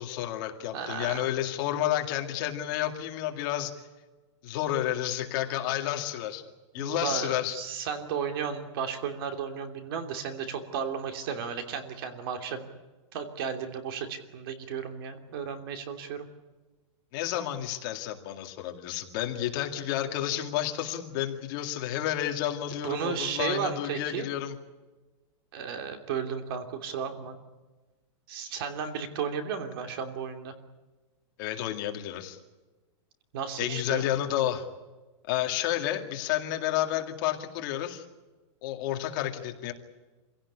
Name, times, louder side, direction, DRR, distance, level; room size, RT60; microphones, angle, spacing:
voice 1, 0.0-3.7 4.4-6.4 6.7-7.6 17.1-24.6 31.4-32.4 33.6-34.6 35.3-38.0 38.6-39.7, left 12 dB, 40° left, 4 dB, 2.3 m, -30 dB
voice 2, 0.7-1.3 6.8-12.6 13.1-16.3 22.8-24.3 25.5-27.3 28.3-30.5 33.3-34.1, right 7 dB, 50° right, 6 dB, 3.0 m, -34 dB
26.5 x 17.0 x 9.9 m, 1.2 s
supercardioid pair, 170°, 16 cm